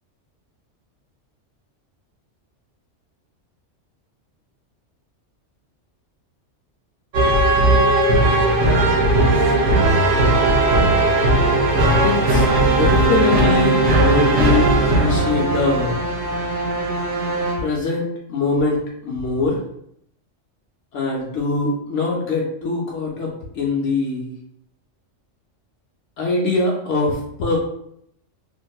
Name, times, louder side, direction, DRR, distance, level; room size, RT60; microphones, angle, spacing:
sound 1, 7.1-17.7, right 2 dB, 70° right, 0.9 m, -17 dB
voice 1, 12.0-16.0 17.6-19.6 20.9-24.3 26.2-27.6, left 3 dB, 75° left, -2 dB, 0.9 m, -23 dB
2.9 x 2.6 x 2.2 m, 0.71 s
omnidirectional pair, 1.3 m